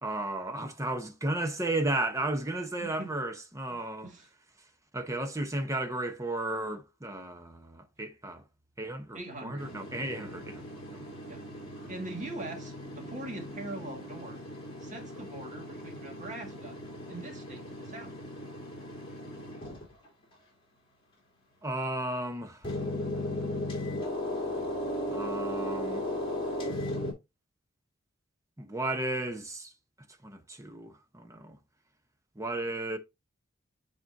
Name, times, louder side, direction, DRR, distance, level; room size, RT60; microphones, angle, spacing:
voice 1, 0.0-4.1 4.9-8.4 8.8-11.0 21.6-22.7 24.2-26.0 28.6-29.7 30.2-31.6 32.4-33.0, right 2 dB, 15° right, 0.9 m, -34 dB
voice 2, 3.7-4.3 9.1-9.7 11.3-11.4 11.9-14.4 14.8-16.8 17.1-18.1, right 2 dB, 40° right, 1.9 m, -42 dB
sound 1, 9.6-20.1 22.6-27.1, left 1 dB, 30° left, 3.1 m, -37 dB
9.0 x 4.3 x 2.6 m
head